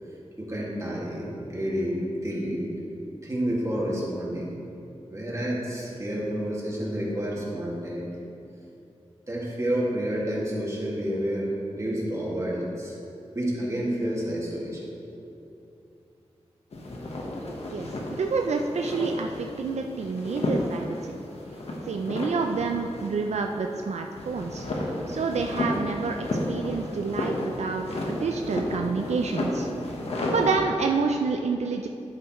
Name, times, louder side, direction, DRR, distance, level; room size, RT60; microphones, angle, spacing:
voice 1, 0.4-2.7 3.2-4.5 5.1-8.1 9.3-13.0 13.3-14.8, equal, 25° right, -5 dB, 2.1 m, -29 dB
sound 1, 16.7-30.6, left 1 dB, 65° left, 1.2 m, -32 dB
voice 2, 18.2-21.1 21.8-24.7 25.1-29.7 30.3-31.9, right 4 dB, 80° right, 3 dB, 0.4 m, -28 dB
11.0 x 8.2 x 3.1 m, 2.8 s
wide cardioid pair, 90°, 11 cm